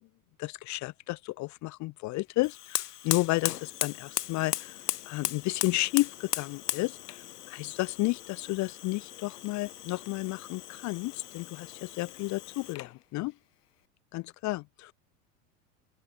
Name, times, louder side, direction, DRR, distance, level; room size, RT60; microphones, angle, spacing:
voice 1, 0.4-4.8 5.1-7.0 7.5-13.3 14.1-14.9, left 20 dB, 40° left, 0.7 m, -32 dB
Fire, 2.4-13.0, left 13 dB, 80° left, 1.1 m, -37 dB
open air
hypercardioid pair, 90°, 46 cm